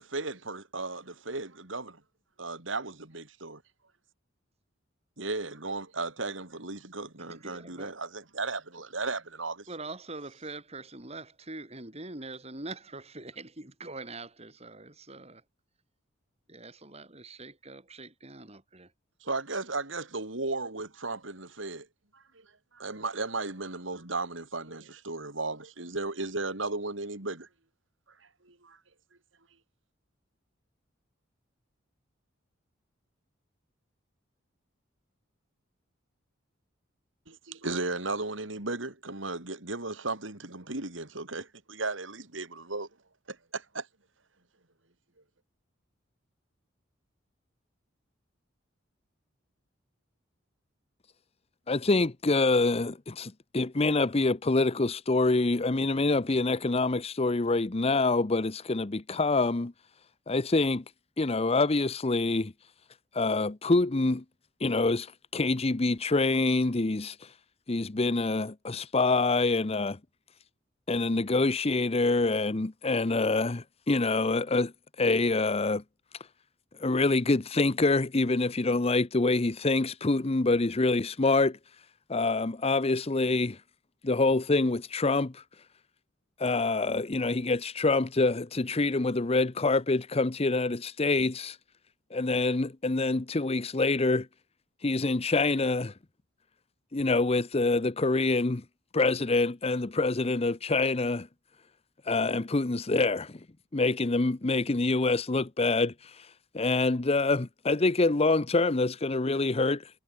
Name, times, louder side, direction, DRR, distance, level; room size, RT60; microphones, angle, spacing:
voice 1, 0.0-2.0 2.4-3.6 5.2-9.7 19.2-21.9 22.1-22.4 22.7-27.5 28.5-28.8 37.3-42.9 43.3-43.9, right 3 dB, 75° right, 3.8 m, -35 dB
voice 2, 7.2-8.0 9.7-15.4 16.5-18.9, right 2 dB, 35° right, 4.7 m, -43 dB
voice 3, 51.7-59.7 60.3-60.8 61.2-62.5 63.1-64.2 64.6-67.2 67.7-70.0 70.9-74.7 75.0-75.8 76.8-81.6 82.1-83.6 84.0-85.4 86.4-91.6 92.1-94.3 94.8-95.9 96.9-98.6 98.9-101.3 102.1-103.4 103.7-106.3 106.5-109.9, left 3 dB, 30° left, 0.7 m, -26 dB
head